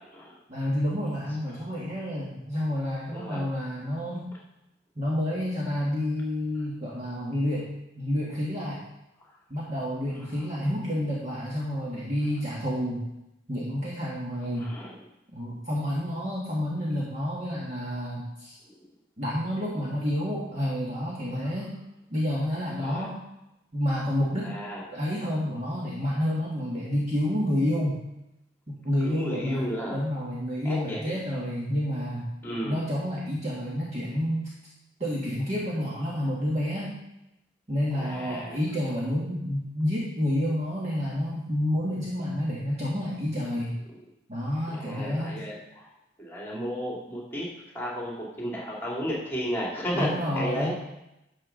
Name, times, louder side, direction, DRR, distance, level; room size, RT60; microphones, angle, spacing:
voice 1, 0.5-4.3 4.9-7.7 7.9-8.8 9.5-13.0 13.5-14.7 15.3-18.6 19.2-21.7 22.1-23.1 23.7-24.5 24.9-28.0 28.7-32.2 32.6-34.5 35.0-36.9 37.7-43.7 44.3-45.4 49.9-50.7, equal, 35° right, -6 dB, 1.7 m, -29 dB
voice 2, 3.1-3.4 14.6-15.0 18.7-18.8 22.8-23.1 24.4-24.8 29.0-30.0 30.6-31.2 32.4-32.8 37.9-38.6 44.7-45.9 46.2-47.5 47.7-50.7, equal, 10° left, -4 dB, 2.3 m, -33 dB
11.5 x 6.6 x 3.9 m, 0.90 s
head